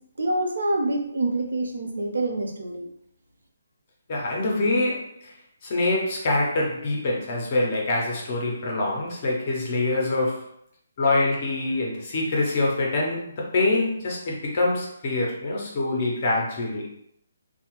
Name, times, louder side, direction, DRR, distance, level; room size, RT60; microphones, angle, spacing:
voice 1, 0.2-2.9, right 2 dB, 75° right, 1 dB, 0.7 m, -26 dB
voice 2, 4.1-5.3 5.6-10.5 11.0-16.9, left 2 dB, 25° left, -2 dB, 0.5 m, -25 dB
2.8 x 2.1 x 3.0 m, 0.71 s
hypercardioid pair, 180°, 0 cm